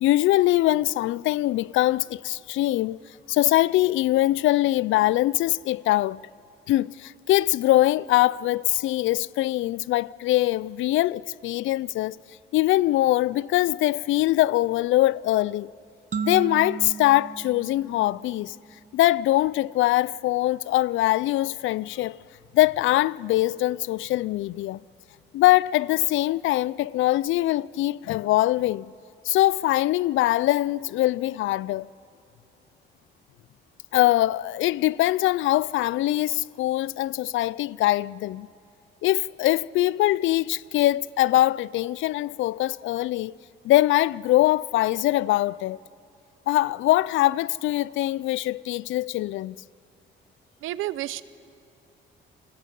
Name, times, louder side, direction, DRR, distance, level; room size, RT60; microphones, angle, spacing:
voice 1, 0.0-3.0 3.3-6.2 6.7-12.2 12.5-15.7 16.2-18.6 18.9-22.2 22.5-24.8 25.3-28.9 29.2-31.9 33.9-38.5 39.0-43.4 43.6-45.8 46.5-49.6, left 16 dB, 80° left, 0.4 m, -22 dB
sound 1, 16.1-18.8, right 6 dB, 40° right, 0.9 m, -35 dB
voice 2, 50.6-51.2, right 15 dB, 90° right, 0.6 m, -30 dB
29.5 x 21.0 x 5.4 m
cardioid pair, 90°, 20 cm